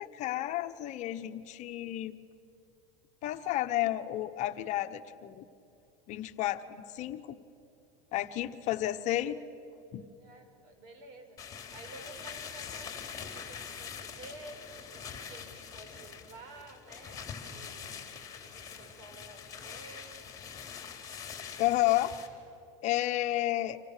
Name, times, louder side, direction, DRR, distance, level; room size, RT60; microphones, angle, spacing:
voice 1, 0.0-2.2 3.2-5.4 6.1-7.4 8.1-9.4 9.9-10.0 21.6-22.1 22.8-23.8, left 15 dB, 45° left, 9 dB, 1.1 m, -31 dB
voice 2, 10.1-11.4 11.7-18.0 18.4-20.2, right 2 dB, 60° right, 5 dB, 5.6 m, -51 dB
sound 1, 11.4-22.3, left 7 dB, 20° left, 3.5 m, -44 dB
29.0 x 26.0 x 6.7 m, 2.6 s
supercardioid pair, 130°, 17 cm